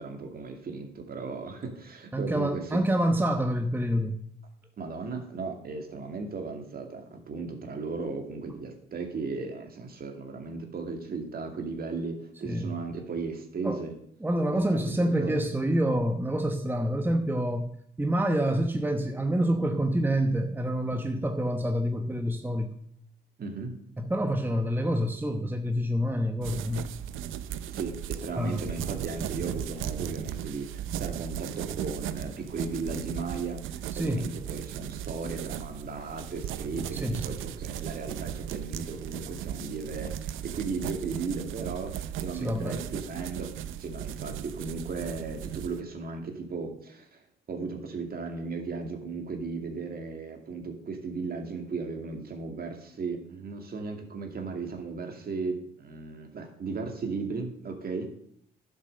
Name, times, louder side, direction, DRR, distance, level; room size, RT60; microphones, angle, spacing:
voice 1, 0.0-2.8 4.8-14.0 14.5-15.4 23.4-23.8 27.7-47.2 47.5-58.1, right 4 dB, 50° right, 4 dB, 2.4 m, -36 dB
voice 2, 2.1-4.2 12.4-12.7 13.6-13.8 14.2-17.7 18.0-22.7 24.0-26.9 28.4-28.6 33.9-34.3 36.9-37.2 42.3-42.8, equal, 10° right, 5 dB, 1.0 m, -27 dB
sound 1, 26.4-45.8, right 10 dB, 85° right, 0.7 m, -37 dB
11.0 x 7.6 x 6.6 m, 0.67 s
cardioid pair, 90°, 20 cm